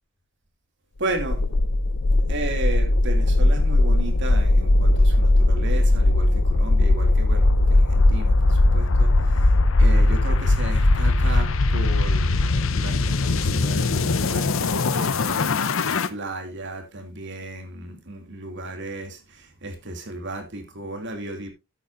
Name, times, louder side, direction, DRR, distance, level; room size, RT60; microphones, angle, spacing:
voice 1, 1.0-1.4 2.3-9.5 9.8-21.5, right 2 dB, 60° right, 2.8 m, -34 dB
sound 1, 1.1-16.1, left 2 dB, 70° left, 0.8 m, -19 dB
13.5 x 8.9 x 2.7 m
head